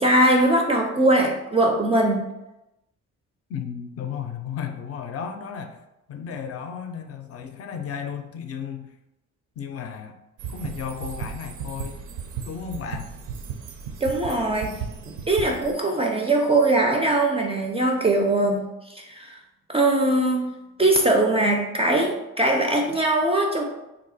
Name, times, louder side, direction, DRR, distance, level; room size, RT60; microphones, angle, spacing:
voice 1, 0.0-2.3 14.0-14.8 15.1-19.4 19.7-20.5 20.8-23.6, right 2 dB, 20° right, 1 dB, 0.4 m, -21 dB
voice 2, 3.5-5.8 6.1-8.9 9.6-10.1 10.5-12.1 12.4-13.1, left 7 dB, 50° left, 6 dB, 0.5 m, -34 dB
sound 1, 10.4-15.7, right 6 dB, 75° right, 0.5 m, -35 dB
2.7 x 2.3 x 4.0 m, 0.93 s
cardioid pair, 90°, 30 cm